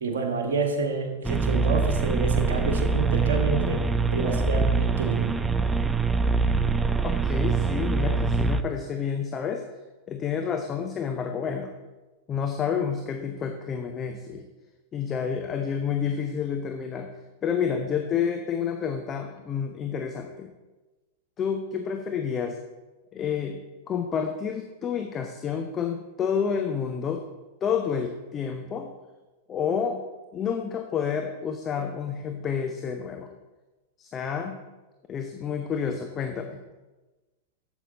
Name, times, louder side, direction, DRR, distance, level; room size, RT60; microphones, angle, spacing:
voice 1, 0.0-3.8 4.1-5.3, right 4 dB, 60° right, 2 dB, 1.6 m, -28 dB
sound 1, 1.2-8.6, right 4 dB, 10° right, 0.5 m, -24 dB
voice 2, 7.0-9.6 10.1-11.7 12.3-14.5 14.9-17.1 17.4-20.5 21.4-22.6 23.1-23.6 23.9-27.2 27.6-28.9 29.5-30.0 30.3-33.3 34.0-34.6 35.1-36.6, left 7 dB, 25° left, 5 dB, 0.8 m, -29 dB
12.0 x 8.1 x 4.0 m, 1.2 s
figure-of-eight pair, 90°, 0 cm